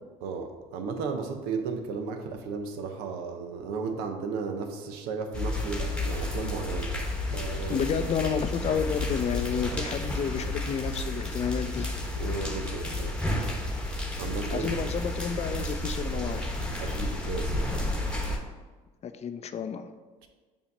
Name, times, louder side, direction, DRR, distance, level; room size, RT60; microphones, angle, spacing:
voice 1, 0.2-7.0 7.3-7.8 9.7-9.9 12.2-13.2 14.2-14.7 16.8-17.5, right 5 dB, 75° right, 5 dB, 0.8 m, -34 dB
sound 1, 5.3-18.4, left 1 dB, 5° left, 1.1 m, -31 dB
voice 2, 7.7-12.0 14.5-16.5 19.0-19.9, left 7 dB, 40° left, 9 dB, 0.5 m, -30 dB
7.2 x 2.8 x 5.3 m, 1.3 s
supercardioid pair, 75°, 17 cm